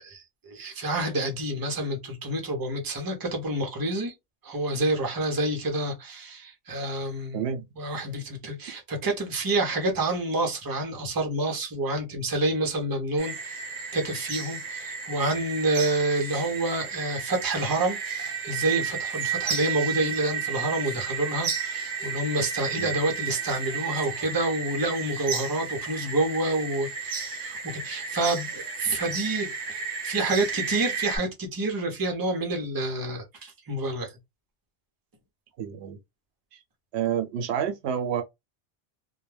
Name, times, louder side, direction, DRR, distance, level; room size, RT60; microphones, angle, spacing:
voice 1, 0.0-4.1 4.4-7.4 7.8-13.6 13.9-29.5 30.0-34.1, right 2 dB, 25° right, 0.5 m, -28 dB
voice 2, 7.3-7.7 22.8-22.9 35.6-36.0 36.5-36.6 36.9-38.2, right 8 dB, 85° right, 0.8 m, -29 dB
sound 1, 13.2-31.2, right 6 dB, 60° right, 0.7 m, -33 dB
2.2 x 2.1 x 3.1 m
omnidirectional pair, 1.1 m